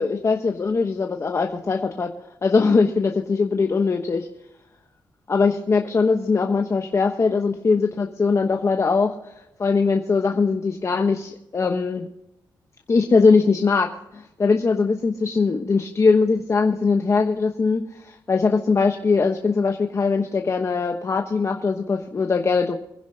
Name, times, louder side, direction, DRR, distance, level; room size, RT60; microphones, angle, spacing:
voice 1, 0.0-2.1 2.4-4.3 5.3-9.3 9.6-12.1 12.9-22.8, left 4 dB, 35° left, 4 dB, 1.0 m, -21 dB
24.5 x 10.5 x 2.8 m, 0.91 s
cardioid pair, 100°, 8 cm